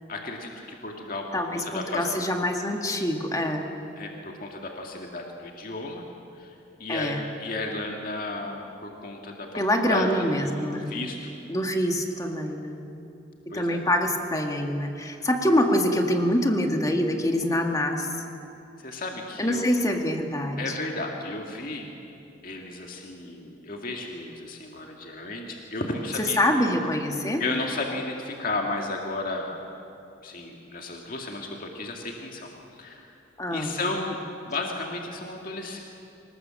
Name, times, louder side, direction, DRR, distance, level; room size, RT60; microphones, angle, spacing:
voice 1, 0.1-1.2 1.5-2.1 4.0-6.1 6.4-6.5 6.8-9.6 9.9-11.2 13.5-13.8 15.0-15.2 18.8-19.7 20.6-21.9 22.4-26.4 27.4-29.6 30.2-32.5 32.8-33.1 33.5-34.2 34.5-35.8, left 2 dB, 50° left, 1 dB, 2.1 m, -33 dB
voice 2, 1.3-1.6 1.9-3.7 6.9-7.2 9.5-10.9 11.5-12.8 13.5-18.1 19.4-20.7 26.2-27.4 33.4-33.8, left 1 dB, 20° left, 3 dB, 1.9 m, -25 dB
25.5 x 19.5 x 7.7 m, 2.7 s
head